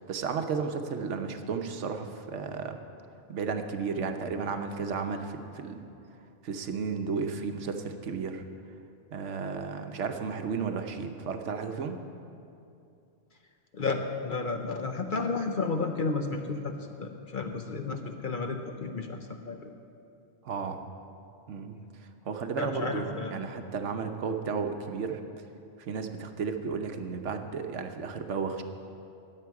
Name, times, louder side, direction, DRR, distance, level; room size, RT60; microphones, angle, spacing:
voice 1, 0.0-2.8 3.3-5.8 6.4-8.4 9.1-12.0 20.4-20.8 21.5-21.7 22.0-25.2 25.8-28.6, right 5 dB, 70° right, 6 dB, 1.1 m, -33 dB
voice 2, 13.7-19.7 22.6-23.3, left 4 dB, 50° left, 4 dB, 0.8 m, -32 dB
20.0 x 7.6 x 4.7 m, 2.7 s
omnidirectional pair, 1.3 m